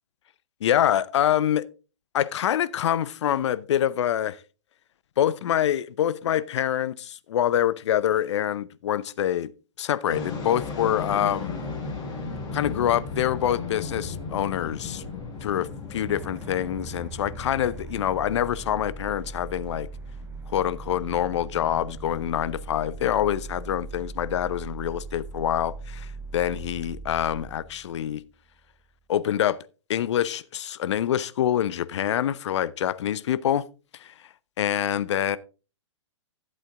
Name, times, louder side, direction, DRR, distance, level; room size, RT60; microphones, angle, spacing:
voice 1, 0.6-1.7 2.1-4.4 5.2-9.5 9.8-11.6 12.5-15.0 15.4-19.9 20.5-28.2 29.1-29.6 29.9-33.7 34.0-34.1 34.6-35.4, left 11 dB, 65° left, 0.7 m, -25 dB
sound 1, 10.1-26.8, left 4 dB, 25° left, 4.8 m, -38 dB
sound 2, 16.1-28.8, right 4 dB, 15° right, 0.7 m, -40 dB
12.0 x 7.8 x 3.6 m
hypercardioid pair, 125°, 16 cm